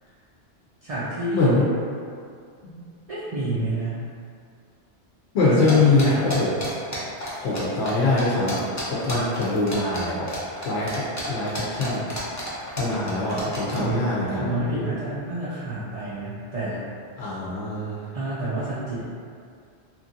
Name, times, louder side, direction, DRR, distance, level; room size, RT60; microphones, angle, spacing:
voice 1, 0.8-1.6 3.1-4.0 5.4-6.4 13.7-16.8 17.2-17.3 18.1-19.1, right 1 dB, 50° right, -10 dB, 0.4 m, -29 dB
voice 2, 1.3-1.7 2.6-2.8 5.3-6.5 7.4-8.6 8.9-10.3 10.6-12.1 12.8-14.4 17.2-18.0, left 3 dB, 75° left, -7 dB, 0.8 m, -23 dB
sound 1, 5.7-7.6 7.9-13.8, left 1 dB, 25° left, 0.4 m, -32 dB
3.0 x 2.6 x 2.5 m, 2.3 s
omnidirectional pair, 1.1 m